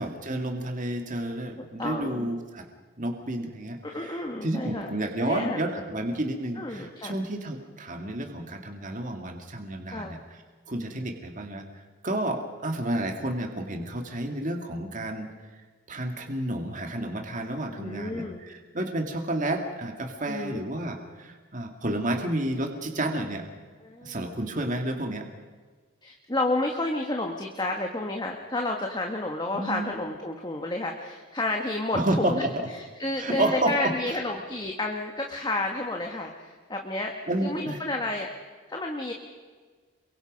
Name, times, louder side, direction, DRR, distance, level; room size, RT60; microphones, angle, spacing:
voice 1, 0.0-2.7 3.0-10.2 10.7-15.3 15.9-23.5 24.0-25.3 29.5-29.9 31.9-32.7 33.2-34.2 37.3-37.8, right 1 dB, 35° right, 4 dB, 2.1 m, -30 dB
voice 2, 1.8-2.3 3.8-4.9 5.2-5.8 6.6-7.1 9.9-10.1 17.8-18.4 20.3-20.6 23.8-24.2 26.0-32.4 33.0-37.1 37.4-38.3 38.7-39.1, left 2 dB, 20° left, 2 dB, 1.6 m, -30 dB
28.5 x 23.5 x 5.4 m, 1.5 s
head